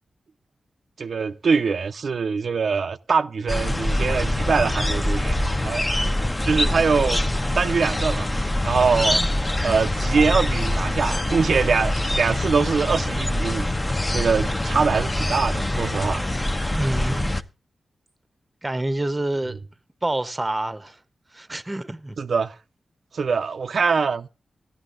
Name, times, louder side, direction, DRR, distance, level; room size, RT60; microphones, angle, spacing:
voice 1, 1.0-5.9 6.4-7.2 7.5-8.3 8.6-9.2 9.6-13.7 14.1-16.2 22.2-22.5 23.1-24.3, right 5 dB, 70° right, 0.5 m, -23 dB
sound 1, 3.5-17.4, left 1 dB, 15° left, 0.7 m, -24 dB
voice 2, 8.9-9.3 16.7-17.3 18.6-19.6 20.0-21.0 21.3-22.2, right 1 dB, 20° right, 0.8 m, -27 dB
15.5 x 11.0 x 2.5 m
wide cardioid pair, 110°, 0 cm